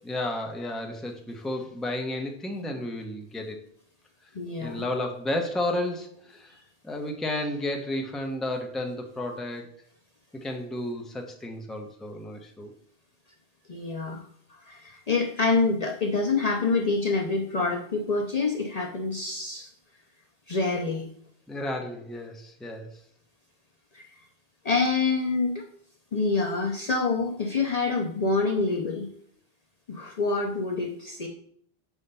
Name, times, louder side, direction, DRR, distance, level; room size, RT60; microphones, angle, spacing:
voice 1, 0.0-3.6 4.6-6.5 6.8-9.7 10.3-12.7 21.5-22.9, left 1 dB, ahead, 3 dB, 0.7 m, -32 dB
voice 2, 4.3-4.8 13.7-14.2 14.7-19.7 20.5-21.1 23.9-24.1 24.6-25.6 26.1-29.1 29.9-31.3, left 3 dB, 45° left, 1 dB, 0.6 m, -26 dB
5.5 x 3.6 x 5.4 m, 0.62 s
omnidirectional pair, 1.0 m